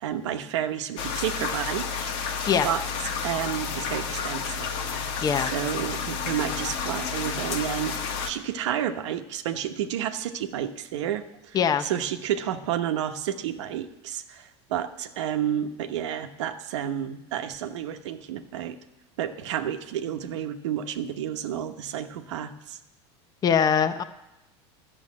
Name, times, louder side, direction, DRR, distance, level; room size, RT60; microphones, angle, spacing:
voice 1, 0.0-2.8 3.2-4.8 5.3-18.8 19.2-22.8, right 10 dB, 85° right, 8 dB, 1.0 m, -31 dB
sound 1, 1.0-8.3, left 6 dB, 65° left, 1.4 m, -31 dB
voice 2, 5.2-5.5 11.5-11.8 23.4-24.0, left 7 dB, 25° left, 10 dB, 0.7 m, -22 dB
11.5 x 7.0 x 8.5 m, 0.92 s
supercardioid pair, 130°, 15 cm